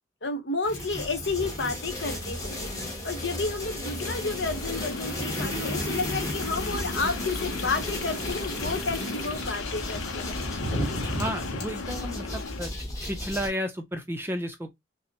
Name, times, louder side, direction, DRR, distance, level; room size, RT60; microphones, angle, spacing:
voice 1, 0.2-10.4, left 3 dB, 65° left, 0.9 m, -31 dB
sound 1, 0.6-13.5, left 1 dB, 15° left, 1.1 m, -34 dB
sound 2, 3.8-12.7, left 4 dB, 85° left, 0.5 m, -37 dB
sound 3, 7.0-11.6, equal, 45° left, 2.7 m, -35 dB
voice 2, 11.2-12.7 13.0-14.7, equal, 10° right, 0.4 m, -32 dB
5.6 x 2.0 x 2.8 m
head